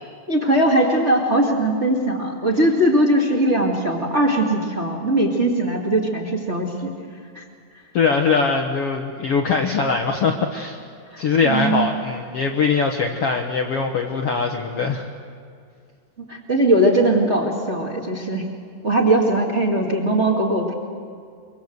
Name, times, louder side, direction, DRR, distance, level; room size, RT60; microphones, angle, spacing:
voice 1, 0.3-6.9 7.3-7.4 11.1-12.0 16.3-18.5 18.8-20.7, right 1 dB, 25° right, -1 dB, 1.7 m, -20 dB
voice 2, 7.9-10.8 11.2-15.1, left 5 dB, 85° left, 2 dB, 1.3 m, -21 dB
24.0 x 24.0 x 8.0 m, 2.2 s
omnidirectional pair, 4.6 m